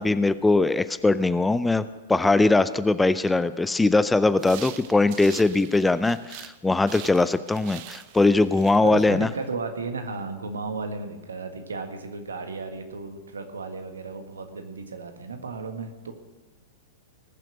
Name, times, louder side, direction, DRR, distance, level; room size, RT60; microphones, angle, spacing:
voice 1, 0.0-9.3, left 2 dB, 5° left, 14 dB, 0.4 m, -21 dB
sound 1, 4.3-6.6 6.9-9.5, right 13 dB, 45° right, 0.8 m, -44 dB
voice 2, 8.8-16.1, right 3 dB, 70° right, 6 dB, 1.7 m, -34 dB
19.5 x 7.6 x 6.2 m, 1.2 s
figure-of-eight pair, 100°, 0 cm